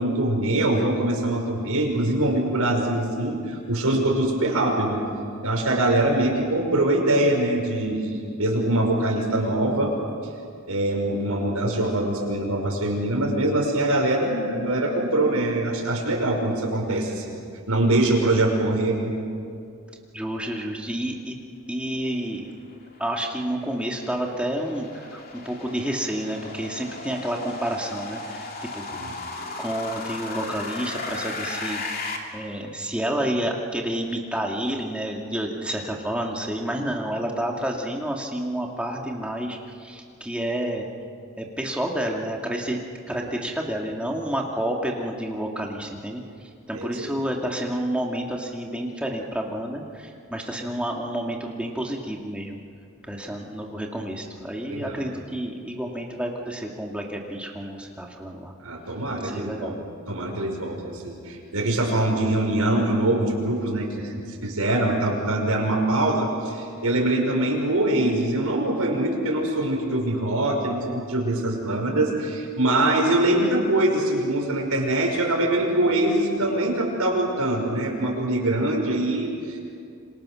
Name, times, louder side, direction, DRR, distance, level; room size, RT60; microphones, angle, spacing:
voice 1, 0.0-5.0 5.4-9.9 10.7-19.1 28.9-29.1 46.7-47.3 54.7-55.0 58.6-59.8 60.1-64.1 64.4-79.6, right 1 dB, 85° right, 0 dB, 5.6 m, -23 dB
voice 2, 20.1-21.4 21.7-22.5 23.0-25.2 25.4-29.2 29.4-31.8 32.3-40.9 41.4-42.8 43.1-52.6 53.0-58.5 59.2-59.8, right 1 dB, 5° right, 0 dB, 2.3 m, -29 dB
sound 1, 22.6-32.2, left 3 dB, 40° left, 2.9 m, -36 dB
27.5 x 26.0 x 6.5 m, 2.3 s
head